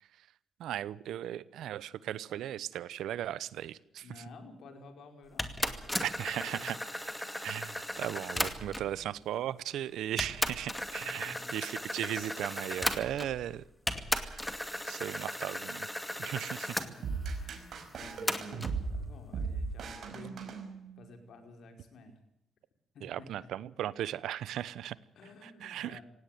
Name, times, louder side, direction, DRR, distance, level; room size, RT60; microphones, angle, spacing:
voice 1, 0.6-4.0 6.0-6.7 7.4-13.6 14.1-14.5 14.9-15.9 16.2-16.7 23.0-25.0 25.6-26.0, right 11 dB, 80° right, 19 dB, 0.9 m, -37 dB
voice 2, 4.0-6.7 8.7-9.1 11.0-11.5 15.3-15.5 16.7-20.6 21.0-22.2 22.9-23.5 25.1-26.0, left 3 dB, 65° left, 5 dB, 5.0 m, -53 dB
sound 1, 5.4-9.0 9.7-9.8 10.2-13.5 13.9-16.9 18.3-18.8, left 1 dB, 10° left, 2.3 m, -36 dB
sound 2, 17.0-21.2, right 4 dB, 60° right, 5.3 m, -37 dB
17.5 x 17.5 x 9.4 m, 0.79 s
cardioid pair, 90°, 0 cm